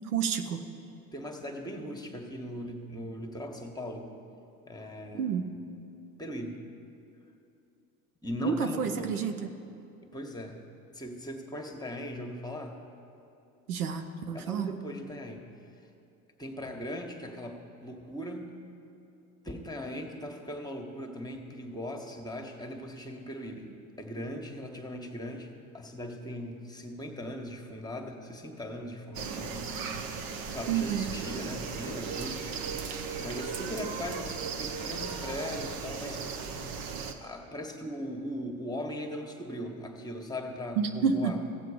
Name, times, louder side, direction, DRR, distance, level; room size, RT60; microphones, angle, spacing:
voice 1, 0.1-0.6 5.1-5.5 8.4-9.5 13.7-14.7 30.7-31.1 40.8-41.3, right 6 dB, 85° right, 7 dB, 0.8 m, -29 dB
voice 2, 1.1-4.1 4.7-5.5 6.2-6.6 8.2-9.2 10.1-10.6 10.9-12.8 14.3-15.5 16.4-18.5 19.4-23.7 24.0-29.6 29.9-30.0 30.5-32.4 33.2-36.2 37.2-41.4, left 1 dB, 10° left, 3 dB, 1.6 m, -39 dB
sound 1, 29.1-37.1, right 5 dB, 50° right, 1.1 m, -36 dB
16.0 x 7.5 x 5.1 m, 2.7 s
hypercardioid pair, 70°, 43 cm